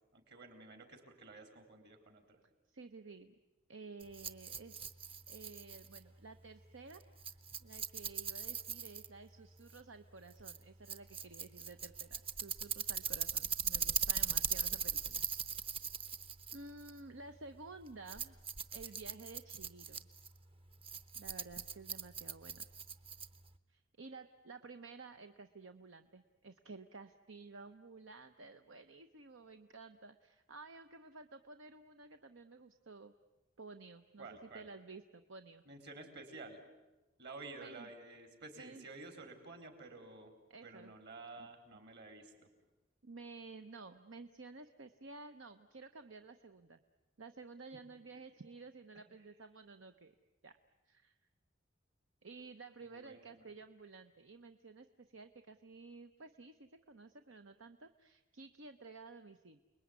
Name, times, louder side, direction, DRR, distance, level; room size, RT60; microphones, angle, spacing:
voice 1, 0.0-2.4 34.2-34.7 35.7-36.6 37.2-40.3 40.6-42.3 52.8-53.4, right 3 dB, 55° right, 6 dB, 4.4 m, -52 dB
voice 2, 2.7-3.3 3.7-4.8 5.3-15.3 16.5-18.4 18.7-20.1 21.1-22.6 23.7-33.1 33.6-34.3 34.5-35.6 37.6-37.9 38.6-38.8 40.5-40.9 41.4-41.5 43.0-46.8 47.2-50.1 50.4-50.5 50.9-51.1 52.2-59.6, right 3 dB, 75° right, 8 dB, 0.9 m, -53 dB
Rattle, 4.0-23.6, right 6 dB, 30° right, 0.8 m, -40 dB
29.0 x 21.0 x 9.6 m, 1.1 s
head